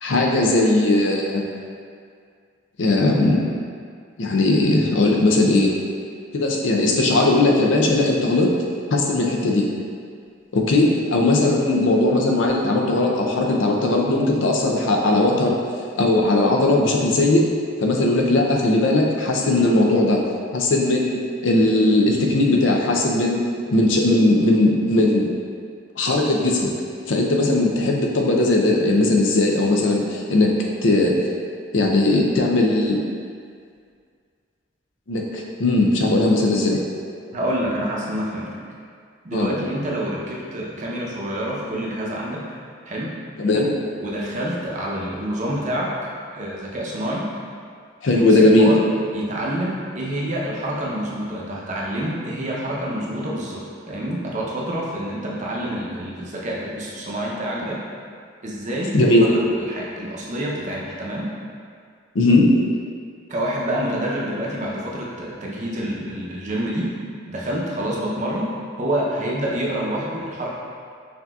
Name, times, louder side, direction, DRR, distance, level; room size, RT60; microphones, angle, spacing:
voice 1, 0.0-1.4 2.8-3.4 4.2-5.7 6.3-8.5 8.9-9.7 10.5-15.6 16.0-17.4 17.8-20.2 20.5-23.4 23.7-25.3 26.0-26.7 27.1-30.5 30.8-31.1 31.7-33.0 35.1-36.8 39.3-39.5 43.4-43.7 48.0-48.7 58.9-59.3 62.1-62.4, left 2 dB, 90° left, -1 dB, 0.5 m, -18 dB
voice 2, 37.3-38.5 39.2-42.4 42.9-43.1 44.0-45.9 46.3-47.3 48.1-48.8 49.1-53.6 53.9-57.8 58.4-58.9 59.3-61.3 63.3-66.9 67.3-68.5 68.8-70.5, right 1 dB, 40° right, -4 dB, 0.7 m, -27 dB
5.8 x 2.8 x 2.3 m, 2.1 s
head